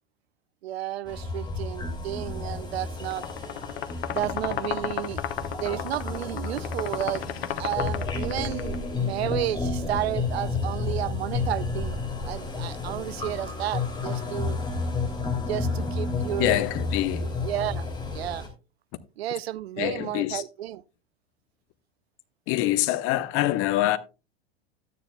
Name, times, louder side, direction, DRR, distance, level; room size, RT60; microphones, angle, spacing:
voice 1, 0.6-3.3 4.1-5.2 5.5-7.2 7.6-12.0 12.2-14.6 15.5-16.6 17.2-18.5 19.2-20.8, right 13 dB, 75° right, 0.5 m, -32 dB
sound 1, 1.1-18.5, left 3 dB, 15° left, 2.8 m, -31 dB
sound 2, 3.0-8.8, left 10 dB, 70° left, 0.9 m, -33 dB
voice 2, 16.4-17.3 19.8-20.4 22.5-24.0, left 15 dB, 45° left, 0.8 m, -25 dB
12.5 x 9.4 x 2.2 m
hypercardioid pair, 90°, 32 cm